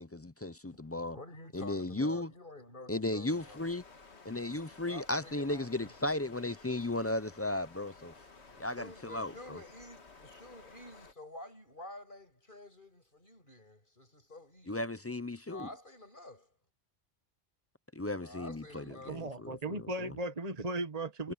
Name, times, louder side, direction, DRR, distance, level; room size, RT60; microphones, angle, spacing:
voice 1, 0.0-1.2 1.5-2.3 2.9-3.8 4.2-8.1 8.6-9.6 14.7-15.7 17.9-20.1, left 2 dB, 20° left, 0.4 m, -35 dB
voice 2, 0.6-3.6 4.9-6.0 8.5-14.8 15.5-16.5 18.2-19.2, left 1 dB, 50° left, 7.9 m, -50 dB
sound 1, 3.3-11.1, left 4 dB, 75° left, 2.3 m, -55 dB
voice 3, 19.1-21.3, right 2 dB, 35° right, 1.5 m, -37 dB
omnidirectional pair, 1.1 m